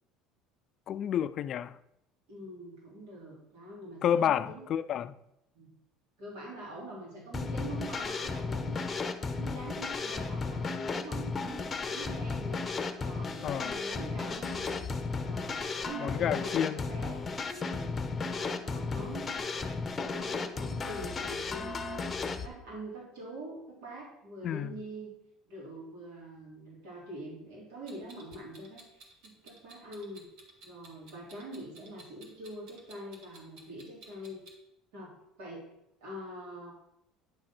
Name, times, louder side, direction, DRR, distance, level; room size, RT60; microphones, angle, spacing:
voice 1, 0.9-1.7 4.0-5.1 13.4-13.8 16.0-16.8 24.4-24.7, left 9 dB, 45° left, 0.3 m, -30 dB
voice 2, 2.3-4.7 5.5-5.7 6.2-12.7 12.9-14.8 15.2-19.4 20.0-25.1 25.5-30.3 30.6-34.4 34.9-35.7 36.0-36.7, right 1 dB, 85° right, 3.0 m, -45 dB
sound 1, 7.3-22.5, left 4 dB, 20° left, 0.7 m, -34 dB
Clock, 27.9-34.5, right 2 dB, 65° right, 1.8 m, -55 dB
9.7 x 3.8 x 5.9 m
cardioid pair, 130°, 0 cm